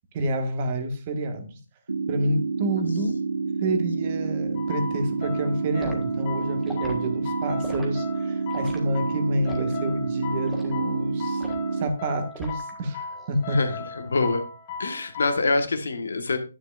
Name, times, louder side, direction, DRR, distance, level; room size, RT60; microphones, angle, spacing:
voice 1, 0.1-1.6 2.1-3.2 3.6-11.4 11.7-13.6, right 1 dB, 30° right, 1.7 m, -28 dB
sound 1, 1.9-11.9, right 4 dB, 85° right, 0.6 m, -28 dB
sound 2, 4.6-15.4, left 4 dB, 30° left, 1.7 m, -38 dB
Liquid, 5.8-6.0 6.6-7.0 7.6-7.9 8.5-8.8 9.4-9.7 10.5-10.7 11.4-11.7 12.3-12.8 13.1-13.4, equal, ahead, 1.6 m, -39 dB
voice 2, 13.5-14.4 14.8-16.4, left 3 dB, 75° left, 1.5 m, -25 dB
10.0 x 8.5 x 2.6 m
hypercardioid pair, 155°, 0 cm